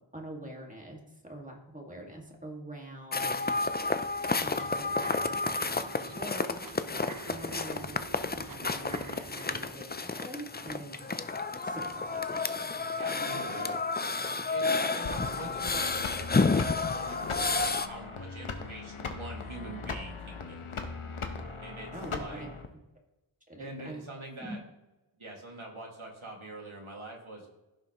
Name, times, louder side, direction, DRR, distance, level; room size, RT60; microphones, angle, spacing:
voice 1, 0.1-3.5 4.4-5.2 5.5-6.6 6.9-8.0 8.4-11.0 11.6-12.7 13.3-13.4 14.7-14.9 15.2-15.3 21.9-22.5 23.5-24.0 24.4-24.6, right 1 dB, 15° right, 0 dB, 2.0 m, -44 dB
Walking On Snow, 3.1-17.9, left 3 dB, 20° left, 0.4 m, -31 dB
sound 1, 3.4-9.8, right 4 dB, 45° right, 0.7 m, -48 dB
voice 2, 12.9-13.8 14.5-20.7 21.6-22.5 23.6-24.6 25.2-27.5, right 2 dB, 80° right, -1 dB, 2.2 m, -44 dB
sound 2, 15.0-22.7, left 4 dB, 90° left, 1.0 m, -39 dB
15.5 x 5.6 x 3.0 m, 1.0 s
wide cardioid pair, 55°, 48 cm